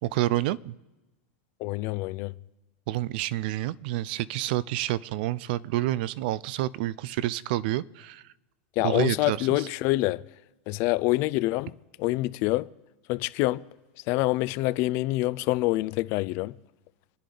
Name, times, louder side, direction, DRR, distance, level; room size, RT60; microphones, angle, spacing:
voice 1, 0.0-0.7 2.9-8.2 8.8-9.7, right 15 dB, 55° right, 0.5 m, -29 dB
voice 2, 1.6-2.3 8.8-10.2 10.7-11.7 12.0-12.7 13.1-13.6 14.1-16.5, left 19 dB, 40° left, 0.5 m, -26 dB
28.5 x 10.0 x 3.9 m
supercardioid pair, 150°, 6 cm